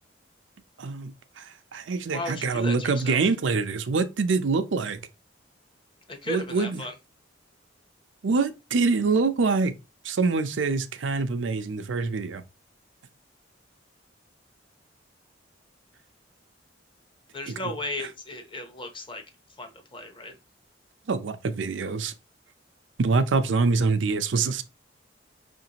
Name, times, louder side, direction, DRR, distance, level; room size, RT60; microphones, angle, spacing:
voice 1, 0.8-5.0 6.3-6.8 8.2-9.7 10.0-12.4 17.5-17.6 21.1-22.1 23.0-24.6, right 4 dB, 80° right, 0.5 m, -25 dB
voice 2, 2.1-3.2 6.1-6.9 17.3-19.2 19.6-20.4, left 1 dB, 25° left, 0.7 m, -35 dB
5.6 x 2.6 x 2.8 m
head